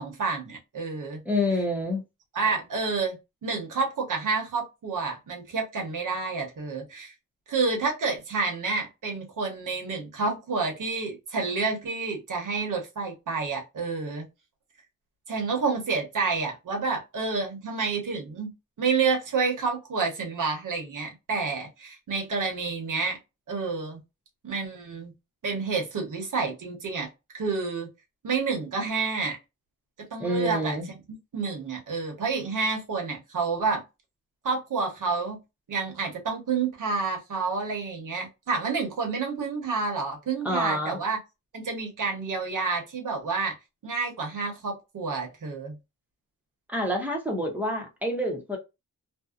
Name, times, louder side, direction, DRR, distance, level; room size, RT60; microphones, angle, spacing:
voice 1, 0.0-1.2 2.3-7.1 7.5-14.2 15.3-23.2 23.5-24.0 24.4-25.1 25.4-27.1 27.3-27.9 28.2-29.4 30.0-31.0 31.3-33.8 34.4-35.4 35.7-41.2 41.5-43.6 43.8-45.8, right 4 dB, 65° right, 1.0 m, -29 dB
voice 2, 1.3-2.0 30.2-30.9 40.4-41.0 46.7-48.6, left 1 dB, 5° right, 0.6 m, -27 dB
2.6 x 2.1 x 2.3 m
wide cardioid pair, 170°, 34 cm